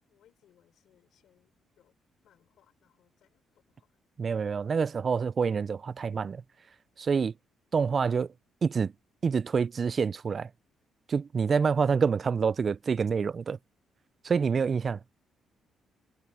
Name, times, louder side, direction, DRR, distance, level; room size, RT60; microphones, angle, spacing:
voice 1, 0.0-1.9 2.2-4.0, left 11 dB, 75° left, 4.6 m, -67 dB
voice 2, 4.2-6.4 7.0-7.3 7.7-8.3 8.6-8.9 9.2-10.5 11.1-13.6 14.2-15.0, right 5 dB, 40° right, 0.4 m, -27 dB
cardioid pair, 90°, 0 cm